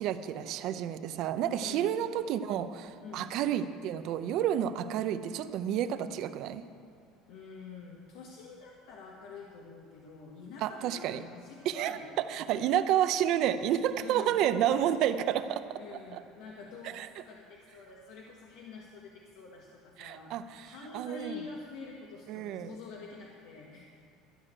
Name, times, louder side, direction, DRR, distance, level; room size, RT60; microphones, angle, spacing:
voice 1, 0.0-6.6 10.6-11.2 11.6-15.8 16.1-16.2 16.9-17.1 20.0-21.4 22.3-22.7, right 10 dB, 55° right, 11 dB, 0.6 m, -30 dB
voice 2, 1.6-1.9 3.0-3.3 7.3-12.2 12.4-12.6 14.0-14.4 15.8-20.3 20.6-23.8, left 4 dB, 75° left, -1 dB, 1.4 m, -47 dB
13.0 x 6.4 x 8.8 m, 2.3 s
cardioid pair, 150°, 0 cm